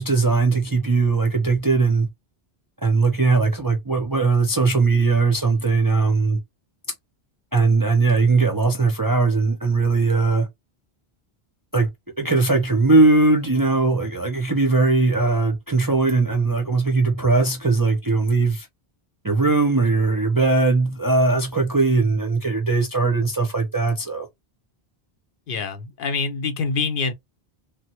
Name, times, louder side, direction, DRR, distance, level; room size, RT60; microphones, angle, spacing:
voice 1, 0.0-2.1 2.8-6.4 7.5-10.5 11.7-11.9 12.2-18.7 19.2-24.3, right 3 dB, 30° right, 0.4 m, -19 dB
voice 2, 25.5-27.1, left 4 dB, 65° left, 0.7 m, -25 dB
3.3 x 2.1 x 2.8 m
omnidirectional pair, 1.1 m